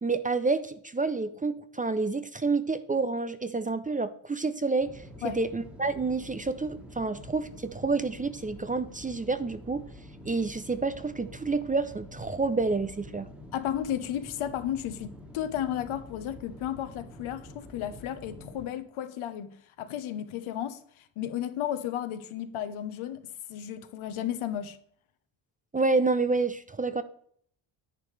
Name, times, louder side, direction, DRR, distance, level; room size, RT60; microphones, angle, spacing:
voice 1, 0.0-9.8 10.2-13.3 25.7-27.0, right 3 dB, 20° right, 0.4 m, -29 dB
sound 1, 4.8-18.7, left 1 dB, 5° right, 1.6 m, -47 dB
voice 2, 13.5-24.8, left 10 dB, 85° left, 1.1 m, -34 dB
10.5 x 10.0 x 3.3 m
cardioid pair, 135°, 48 cm